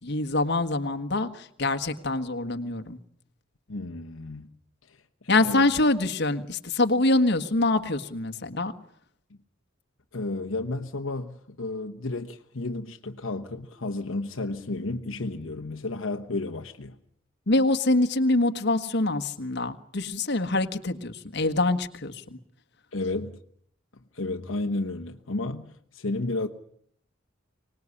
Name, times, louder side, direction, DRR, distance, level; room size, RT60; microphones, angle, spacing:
voice 1, 0.0-3.0 5.3-8.7 17.5-22.4, left 2 dB, 60° left, 1.5 m, -25 dB
voice 2, 3.7-4.5 4.9-5.7 10.1-17.0 22.9-23.4 24.1-26.5, left 2 dB, 80° left, 1.2 m, -32 dB
25.0 x 19.5 x 9.8 m
head